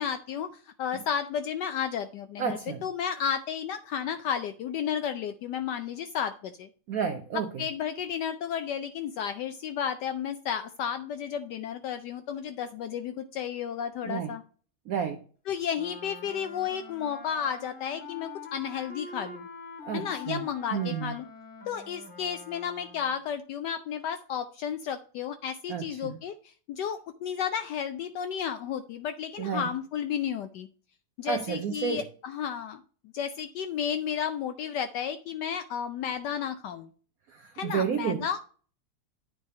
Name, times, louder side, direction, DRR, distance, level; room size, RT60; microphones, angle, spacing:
voice 1, 0.0-6.7 7.6-14.4 15.5-19.5 19.9-21.2 21.7-30.7 31.2-32.8 33.1-36.9 37.5-38.4, left 8 dB, 75° left, 1.0 m, -32 dB
voice 2, 2.4-2.8 6.9-7.5 14.0-14.4 14.9-15.2 19.8-20.4 20.7-21.1 25.7-26.2 29.4-29.7 31.2-32.1 37.3-38.4, right 7 dB, 90° right, 0.7 m, -31 dB
Wind instrument woodwind instrument, 15.7-23.1, left 3 dB, 30° left, 1.4 m, -45 dB
9.4 x 3.3 x 5.4 m
omnidirectional pair, 2.3 m